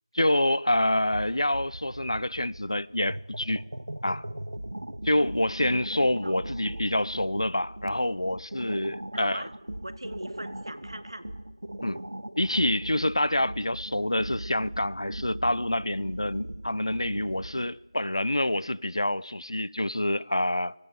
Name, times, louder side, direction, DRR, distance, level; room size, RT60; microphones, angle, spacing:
voice 1, 0.1-3.7 4.0-4.3 5.0-9.4 11.8-12.0 12.4-20.7, left 1 dB, 75° left, 0.8 m, -27 dB
sound 1, 0.7-17.7, right 1 dB, 80° right, 1.5 m, -39 dB
voice 2, 6.2-6.6 9.1-9.5 9.8-11.3, right 1 dB, 65° right, 1.9 m, -40 dB
24.5 x 23.0 x 7.0 m
figure-of-eight pair, 175°, 3 cm